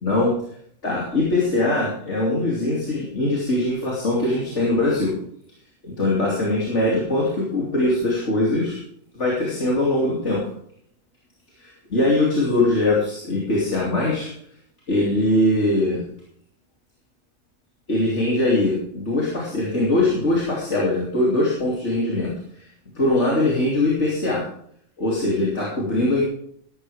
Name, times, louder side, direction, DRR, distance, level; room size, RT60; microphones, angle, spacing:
voice 1, 0.8-5.2 5.8-8.8 9.1-10.4 11.6-14.3 14.9-16.0 17.9-22.7 22.9-24.4 25.0-26.2, left 2 dB, 65° left, -5 dB, 3.2 m, -21 dB
15.0 x 12.0 x 3.5 m, 0.66 s
omnidirectional pair, 1.3 m